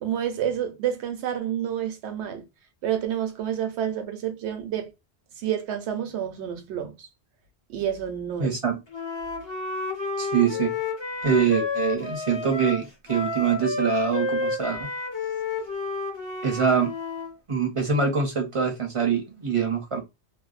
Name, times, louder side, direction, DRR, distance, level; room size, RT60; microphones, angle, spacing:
voice 1, 0.0-2.4 2.8-4.9 5.4-7.1 7.7-8.5, right 10 dB, 80° right, 0.9 m, -29 dB
voice 2, 8.4-8.8 10.2-10.7 11.2-14.9 16.4-16.9 17.5-20.0, right 6 dB, 40° right, 0.5 m, -24 dB
Wind instrument woodwind instrument, 8.9-17.3, left 3 dB, 35° left, 0.5 m, -30 dB
2.6 x 2.1 x 2.4 m
omnidirectional pair, 1.1 m